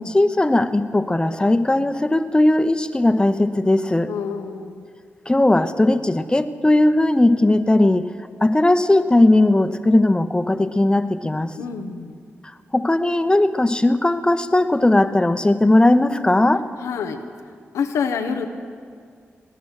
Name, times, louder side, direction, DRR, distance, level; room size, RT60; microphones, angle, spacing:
voice 1, 0.0-4.1 5.3-8.1 8.4-11.5 12.7-16.6, left 1 dB, 15° left, 9 dB, 0.9 m, -18 dB
voice 2, 4.1-4.9 11.6-12.2 16.8-17.2 17.7-18.5, left 6 dB, 90° left, 6 dB, 0.8 m, -27 dB
19.0 x 10.0 x 6.5 m, 2.1 s
supercardioid pair, 45°, 5 cm